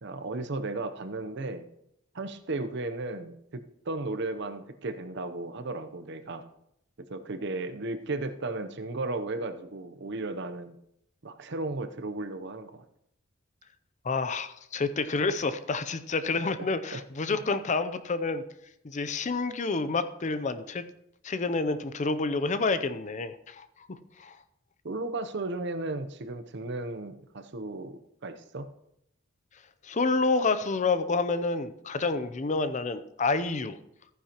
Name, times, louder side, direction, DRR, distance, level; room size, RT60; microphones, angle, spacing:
voice 1, 0.0-1.7 2.1-6.5 7.1-10.8 11.2-12.8 16.9-17.0 17.3-17.4 24.8-28.7, right 2 dB, 60° right, 9 dB, 0.7 m, -35 dB
voice 2, 14.0-18.4 18.8-20.8 21.2-24.3 29.8-33.8, left 3 dB, 35° left, 12 dB, 0.5 m, -29 dB
14.5 x 9.5 x 2.9 m, 0.78 s
head